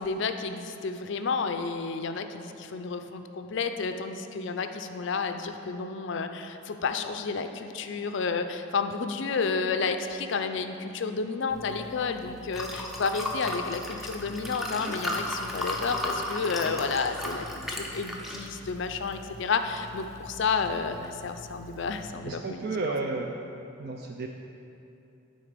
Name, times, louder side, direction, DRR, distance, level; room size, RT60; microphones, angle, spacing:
voice 1, 0.0-22.6, left 4 dB, 60° left, 7 dB, 0.4 m, -31 dB
Liquid, 11.5-22.0, left 1 dB, ahead, 0.6 m, -36 dB
voice 2, 22.3-23.5 23.8-24.3, right 3 dB, 50° right, 2 dB, 0.4 m, -32 dB
11.5 x 4.2 x 5.1 m, 2.8 s
head